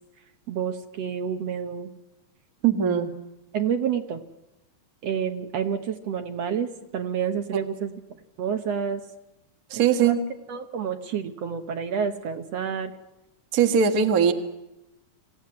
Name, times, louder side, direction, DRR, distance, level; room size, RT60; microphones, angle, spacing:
voice 1, 0.5-1.9 3.5-4.2 5.0-7.9 8.4-9.0 9.7-10.2 10.5-12.9, right 7 dB, 65° right, 6 dB, 2.0 m, -29 dB
voice 2, 2.6-3.1 7.5-7.6 9.7-10.2 13.5-14.3, right 7 dB, 40° right, 5 dB, 1.4 m, -20 dB
25.0 x 16.0 x 9.7 m, 0.97 s
omnidirectional pair, 3.4 m